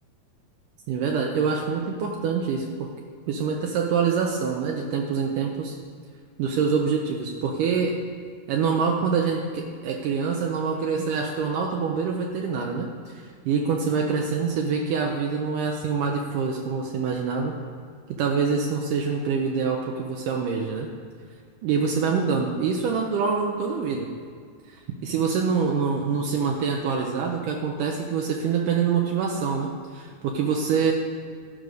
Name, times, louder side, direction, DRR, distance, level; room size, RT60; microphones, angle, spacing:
voice 1, 0.9-2.7 3.3-5.8 6.4-8.0 8.5-17.5 18.2-20.9 21.6-24.1 24.7-30.9, right 5 dB, 80° right, 1 dB, 2.1 m, -25 dB
12.5 x 5.3 x 6.4 m, 2.1 s
omnidirectional pair, 4.1 m